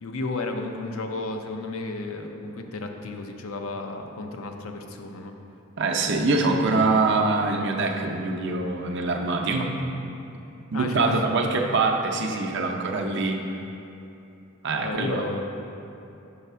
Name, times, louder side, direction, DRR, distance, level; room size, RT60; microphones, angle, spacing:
voice 1, 0.0-5.4 10.7-11.2 14.8-15.4, left 2 dB, 85° left, 4 dB, 0.5 m, -32 dB
voice 2, 5.8-9.7 10.7-13.4 14.6-15.2, right 3 dB, 60° right, 2 dB, 0.5 m, -24 dB
5.6 x 4.1 x 5.5 m, 2.8 s
head